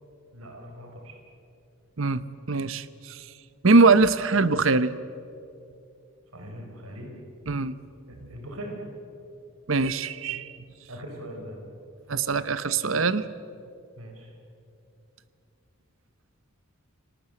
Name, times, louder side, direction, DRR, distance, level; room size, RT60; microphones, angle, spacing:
voice 1, 0.3-1.2 6.3-7.1 8.1-8.8 10.9-11.7 14.0-14.3, equal, 90° right, 2 dB, 5.1 m, -40 dB
voice 2, 2.0-3.2 3.6-4.9 7.5-7.8 9.7-10.5 12.1-13.2, right 3 dB, 65° right, 15 dB, 0.9 m, -22 dB
29.5 x 19.5 x 7.9 m, 2.6 s
head